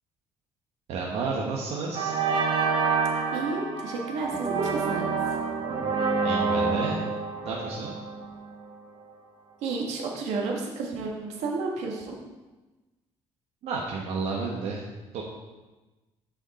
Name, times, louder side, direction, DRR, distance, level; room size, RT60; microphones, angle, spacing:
voice 1, 0.9-2.1 6.2-7.0 7.4-7.9 13.6-14.8 15.1-15.2, right 4 dB, 70° right, -3 dB, 1.1 m, -31 dB
sound 1, 1.2-1.5 1.9-8.8, right 4 dB, 50° right, 1.0 m, -28 dB
voice 2, 3.3-5.1 9.6-12.2, right 3 dB, 85° right, 0 dB, 1.6 m, -31 dB
9.3 x 4.9 x 4.2 m, 1.2 s
cardioid pair, 135°, 11 cm